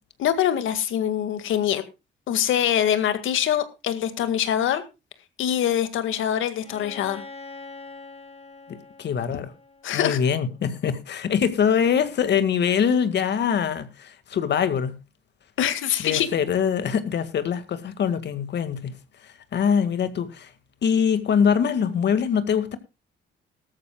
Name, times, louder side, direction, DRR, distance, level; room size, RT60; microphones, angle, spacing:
voice 1, 0.2-1.8 2.3-4.8 5.4-7.2 9.8-10.2 15.6-16.3, left 10 dB, 80° left, 2.0 m, -24 dB
Bowed string instrument, 6.6-10.4, left 3 dB, 30° left, 4.3 m, -43 dB
voice 2, 8.7-9.5 9.9-15.0 16.0-19.0 19.2-20.5 20.8-22.8, left 7 dB, 60° left, 1.9 m, -23 dB
18.0 x 13.5 x 2.3 m
cardioid pair, 90°, 20 cm